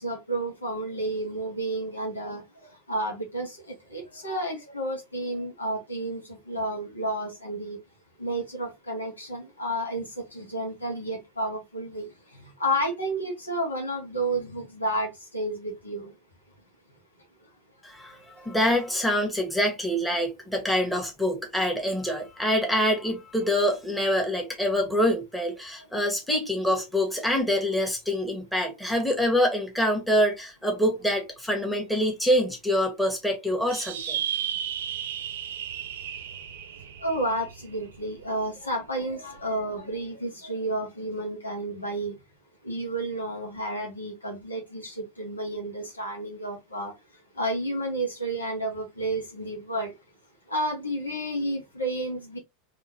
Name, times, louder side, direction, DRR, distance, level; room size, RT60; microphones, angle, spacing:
voice 1, 0.0-2.4 2.9-7.8 8.2-12.1 12.6-16.1 37.0-42.1 42.6-46.9 47.4-49.9 50.5-52.4, right 1 dB, 85° left, 1.6 m, -31 dB
voice 2, 17.8-34.2, equal, 5° left, 1.5 m, -25 dB
Gryffin Cry, 33.7-38.4, right 9 dB, 65° right, 0.5 m, -34 dB
3.7 x 3.2 x 2.9 m
figure-of-eight pair, 85°, 0 cm